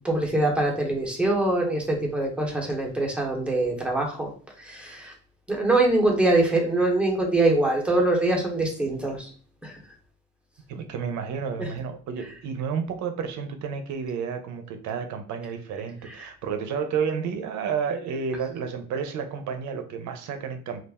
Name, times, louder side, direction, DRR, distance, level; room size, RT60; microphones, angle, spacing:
voice 1, 0.0-4.3 4.6-5.1 5.5-9.3 9.6-9.8 11.6-11.7, right 2 dB, 5° right, -1 dB, 0.9 m, -23 dB
voice 2, 10.7-20.8, right 6 dB, 65° right, 7 dB, 0.6 m, -31 dB
2.4 x 2.0 x 3.4 m, 0.43 s
cardioid pair, 100°, 32 cm